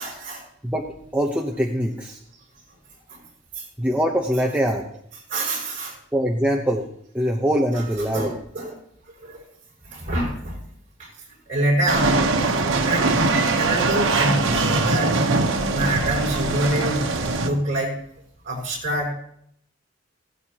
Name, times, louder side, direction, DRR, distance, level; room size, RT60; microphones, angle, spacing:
voice 1, 0.0-0.5 3.1-3.2 3.6-3.7 5.3-6.0 7.7-8.8 9.1-9.5 9.8-10.6 11.0-11.1 11.5-12.2 12.8-13.3 13.6-14.4 14.8-15.1 15.7-17.1 17.4-18.0 18.4-19.1, right 1 dB, 40° right, -4 dB, 5.8 m, -26 dB
voice 2, 0.6-2.2 3.8-4.8 6.1-6.9 7.1-8.4, equal, 5° right, -1 dB, 0.9 m, -23 dB
sound 1, 11.9-17.5, right 3 dB, 85° right, 1.1 m, -21 dB
16.5 x 14.5 x 3.0 m, 0.71 s
head